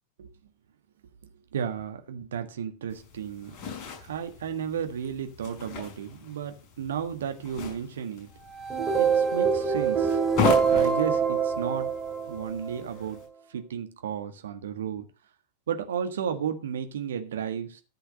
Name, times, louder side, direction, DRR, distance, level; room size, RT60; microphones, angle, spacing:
voice 1, 1.5-3.6 4.0-8.3 9.0-10.2 10.7-11.9 12.3-13.2 13.5-15.1 15.7-17.8, right 8 dB, 60° right, 6 dB, 1.6 m, -33 dB
sound 1, 2.9-13.3, left 6 dB, 35° left, 5.7 m, -36 dB
sound 2, 8.5-12.8, right 6 dB, 20° right, 2.5 m, -25 dB
14.0 x 5.7 x 5.2 m, 0.33 s
figure-of-eight pair, 90°, 0 cm